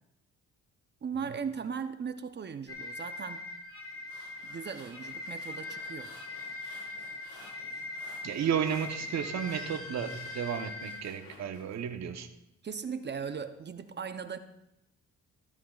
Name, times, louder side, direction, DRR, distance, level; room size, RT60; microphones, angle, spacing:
voice 1, 1.0-3.4 4.4-6.1 12.6-14.4, right 6 dB, 35° right, 0.7 m, -38 dB
sound 1, 2.7-11.0, left 2 dB, 45° left, 2.5 m, -41 dB
sound 2, 3.8-11.8, left 3 dB, 75° left, 4.4 m, -55 dB
voice 2, 8.2-12.3, right 8 dB, 60° right, 1.0 m, -33 dB
14.0 x 12.5 x 2.4 m
cardioid pair, 90°, 30 cm